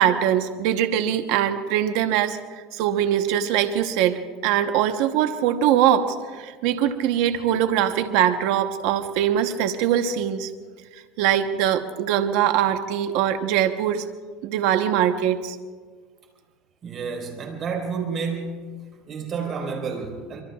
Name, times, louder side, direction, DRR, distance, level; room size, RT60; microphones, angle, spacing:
voice 1, 0.0-2.4 2.7-10.5 11.2-14.1 14.4-15.6, right 10 dB, 70° right, 7 dB, 1.0 m, -22 dB
voice 2, 16.8-18.8 19.1-20.4, right 5 dB, 35° right, 2 dB, 4.4 m, -30 dB
25.5 x 23.5 x 2.4 m, 1.5 s
supercardioid pair, 125°, 0 cm